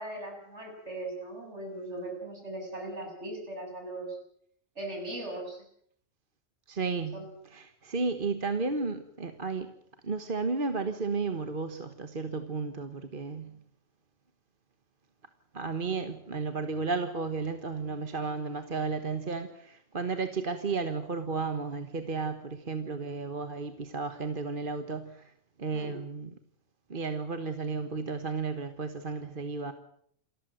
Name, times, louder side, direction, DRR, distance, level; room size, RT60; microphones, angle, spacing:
voice 1, 0.0-4.2 4.8-5.6 7.1-7.2 25.7-26.0, right 1 dB, 60° right, 2 dB, 7.6 m, -39 dB
voice 2, 6.7-9.7 10.0-13.6 15.5-25.3 25.6-26.3 26.9-29.7, right 4 dB, 40° right, 8 dB, 1.5 m, -33 dB
28.0 x 14.0 x 9.2 m, 0.67 s
omnidirectional pair, 1.3 m